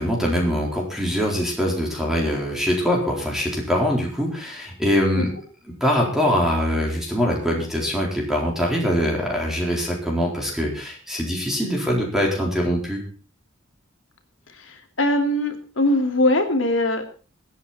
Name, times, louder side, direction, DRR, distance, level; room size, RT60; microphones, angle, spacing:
voice 1, 0.0-5.3 5.8-13.0, equal, ahead, -2 dB, 4.2 m, -23 dB
voice 2, 14.6-17.0, left 1 dB, 85° left, 5 dB, 2.8 m, -21 dB
22.5 x 9.4 x 4.3 m, 0.39 s
head